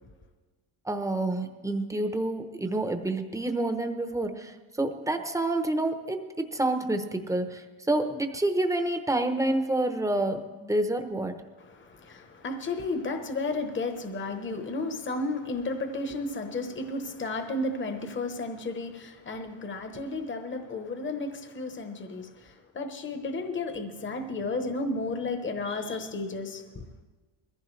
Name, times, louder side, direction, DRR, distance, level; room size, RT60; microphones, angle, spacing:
voice 1, 0.8-11.4, right 2 dB, 5° right, 0.9 m, -28 dB
voice 2, 11.6-26.8, left 2 dB, 25° left, 1.1 m, -33 dB
21.5 x 15.0 x 3.3 m
cardioid pair, 145°, 49 cm